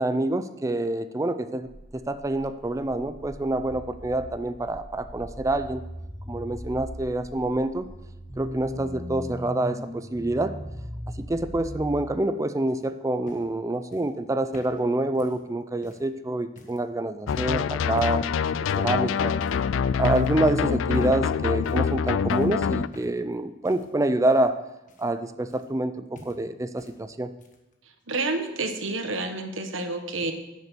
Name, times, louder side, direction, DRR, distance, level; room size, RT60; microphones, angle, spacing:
voice 1, 0.0-1.7 1.9-5.8 6.3-7.9 8.4-10.6 11.3-19.4 20.0-24.6 25.0-27.3, right 1 dB, 15° right, 11 dB, 0.4 m, -27 dB
sound 1, 1.6-12.0, equal, 20° left, 2.0 m, -39 dB
sound 2, 12.7-16.1 16.6-16.8 17.2-17.6 18.0-18.3 18.6-18.9 19.4-19.7 20.1-20.6 20.9-21.2 21.6-22.0 22.3-23.3 23.6-25.9 26.1-27.0 27.2-27.7 28.7-28.8, left 1 dB, 40° left, 1.4 m, -51 dB
sound 3, 17.3-22.9, left 6 dB, 80° left, 0.3 m, -25 dB
voice 2, 28.1-30.3, right 2 dB, 85° right, 6 dB, 1.3 m, -29 dB
10.5 x 6.8 x 6.8 m, 1.0 s
head